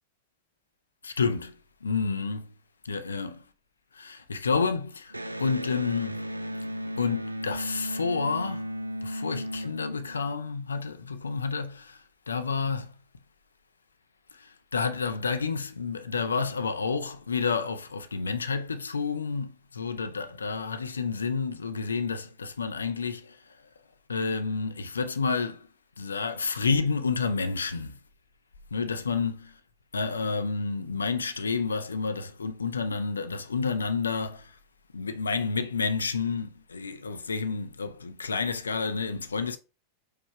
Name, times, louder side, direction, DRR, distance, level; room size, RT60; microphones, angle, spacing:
voice 1, 1.0-1.5 1.8-2.5 2.8-3.4 4.0-5.1 5.4-6.2 7.0-8.6 9.0-12.0 12.3-12.9 14.7-23.4 24.1-25.6 26.0-28.0 28.7-29.5 29.9-34.5 34.9-39.6, left 5 dB, 75° left, 0.5 m, -29 dB
Electric guitar, 5.1-10.6, equal, 85° right, 0.3 m, -35 dB
4.8 x 2.3 x 4.4 m
figure-of-eight pair, 90°, 0 cm